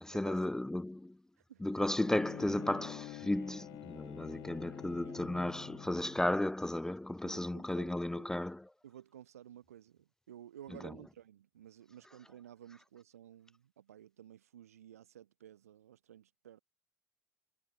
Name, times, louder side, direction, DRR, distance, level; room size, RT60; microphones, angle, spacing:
voice 1, 0.0-1.2 1.6-8.7, left 1 dB, 5° left, 0.4 m, -34 dB
Bowed string instrument, 1.8-6.4, left 22 dB, 65° left, 1.1 m, -48 dB
voice 2, 7.2-8.3 8.8-16.6, right 10 dB, 85° right, 1.8 m, -54 dB
hypercardioid pair, 65°, 8 cm